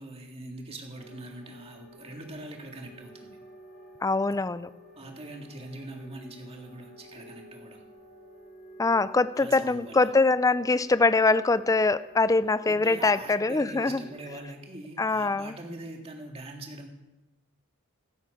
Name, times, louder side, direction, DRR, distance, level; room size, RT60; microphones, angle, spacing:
voice 1, 0.0-3.4 4.3-4.4 5.0-7.8 9.4-10.1 12.4-16.9, right 1 dB, 25° right, 2 dB, 1.9 m, -43 dB
sound 1, 0.9-14.4, equal, 40° left, 4.1 m, -52 dB
voice 2, 4.0-4.7 8.8-14.0 15.0-15.5, left 3 dB, 15° left, 16 dB, 0.3 m, -23 dB
15.5 x 12.0 x 4.9 m, 1.0 s
head